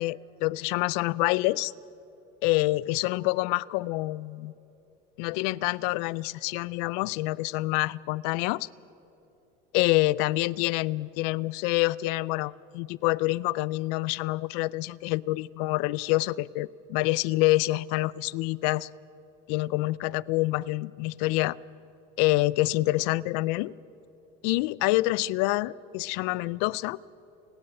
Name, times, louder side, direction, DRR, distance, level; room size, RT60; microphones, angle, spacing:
voice 1, 0.0-1.7 2.4-4.5 5.2-8.7 9.7-18.9 19.5-21.6 22.2-23.7 24.4-27.0, left 20 dB, 85° left, 22 dB, 0.4 m, -27 dB
30.0 x 10.0 x 8.6 m, 2.9 s
cardioid pair, 175°, 20 cm